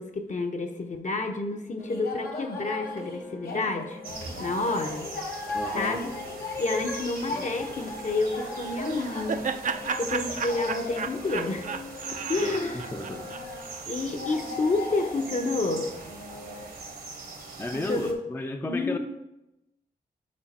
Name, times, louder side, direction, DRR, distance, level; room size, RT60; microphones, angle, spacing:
voice 1, 0.0-4.0 4.4-5.1 5.7-6.1 6.6-9.4 10.0-11.7 12.1-12.9 13.9-15.9 17.7-18.2 18.6-19.0, left 3 dB, 50° left, 4 dB, 0.8 m, -29 dB
sound 1, 1.8-16.7, left 2 dB, 80° left, 1.1 m, -38 dB
sound 2, 4.0-18.1, right 3 dB, 70° right, 1.1 m, -42 dB
voice 2, 5.5-6.0 7.2-7.5 12.4-13.3 17.6-19.0, left 2 dB, 15° left, 5 dB, 0.4 m, -34 dB
Laughter, 8.6-13.8, right 5 dB, 55° right, 0.4 m, -34 dB
6.2 x 4.0 x 4.3 m, 0.93 s
cardioid pair, 70°, 16 cm